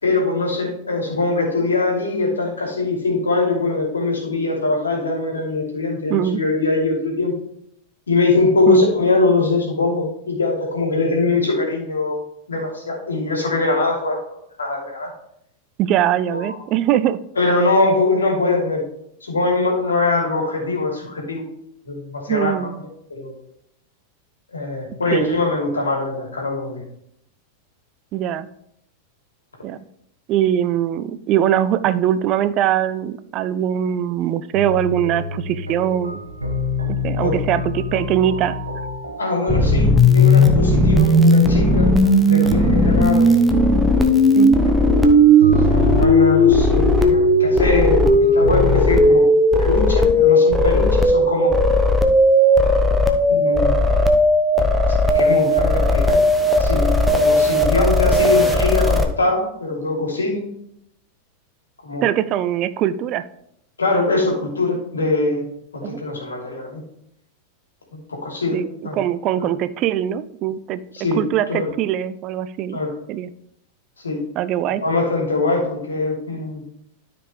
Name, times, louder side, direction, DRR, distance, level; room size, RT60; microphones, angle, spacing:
voice 1, 0.0-7.3 8.1-12.2 12.5-14.2 14.6-15.1 16.3-16.6 17.4-18.8 19.2-21.4 21.9-22.6 23.1-23.4 24.5-26.8 37.2-37.4 39.2-41.9 42.3-43.3 45.7-49.3 49.6-51.5 53.3-53.8 55.0-56.2 56.6-60.4 61.8-62.1 63.8-65.5 65.7-66.8 67.9-68.6 68.8-69.0 70.9-71.2 71.5-71.7 72.7-72.9 74.0-74.2 74.8-76.6, left 3 dB, 75° left, -1 dB, 2.8 m, -22 dB
voice 2, 6.1-6.4 8.7-8.9 15.8-17.2 22.3-22.8 25.1-25.5 28.1-28.5 29.6-29.8 30.3-36.2 36.9-38.6 44.4-44.6 62.0-63.2 65.8-66.0 68.5-68.7 69.0-70.8 71.2-72.8 73.1-73.3 74.4-74.8, right 11 dB, 35° right, 14 dB, 0.4 m, -21 dB
sound 1, 34.5-48.8, left 1 dB, 80° right, 1.1 m, -28 dB
sound 2, 39.5-59.0, left 1 dB, ahead, 0.9 m, -15 dB
13.0 x 5.1 x 3.2 m, 0.74 s
figure-of-eight pair, 90°, 0 cm